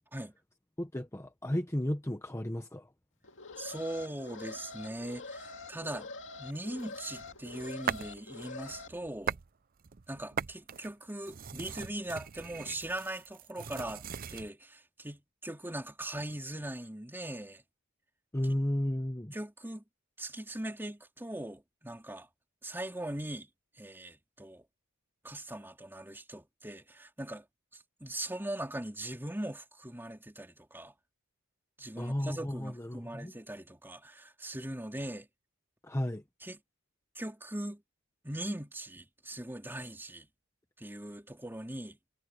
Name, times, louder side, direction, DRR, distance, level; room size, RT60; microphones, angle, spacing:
voice 1, 0.8-2.9 18.3-19.3 32.0-33.3 35.8-36.2, left 1 dB, 10° left, 1.0 m, -33 dB
Alarm, 3.2-8.9, left 3 dB, 60° left, 2.3 m, -46 dB
voice 2, 3.6-6.1 6.4-9.4 10.1-14.0 14.3-17.6 18.5-18.6 19.3-19.8 20.2-22.3 22.6-23.5 23.8-24.6 25.2-27.4 28.0-30.9 31.8-35.3 36.4-36.6 37.1-37.8 38.2-40.3 40.8-42.0, right 1 dB, 10° right, 3.2 m, -40 dB
sound 1, 6.8-8.2 8.6-9.5 9.8-14.5, right 7 dB, 40° right, 0.6 m, -40 dB
head